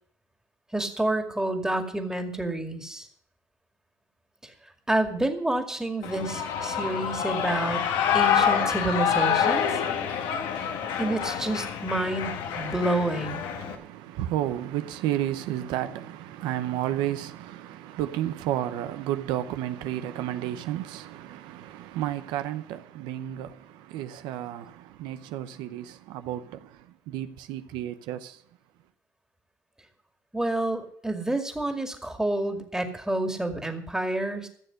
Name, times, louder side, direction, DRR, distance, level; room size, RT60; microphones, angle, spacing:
voice 1, 0.7-3.1 4.4-4.5 4.9-7.8 8.1-9.8 11.0-13.5 30.3-34.5, right 2 dB, 10° right, 2.2 m, -29 dB
Shout / Cheering, 6.0-13.8, left 8 dB, 85° left, 1.7 m, -27 dB
voice 2, 12.5-13.0 13.5-28.4, right 12 dB, 85° right, 0.8 m, -32 dB
14.5 x 7.0 x 7.6 m
supercardioid pair, 85°, 8 cm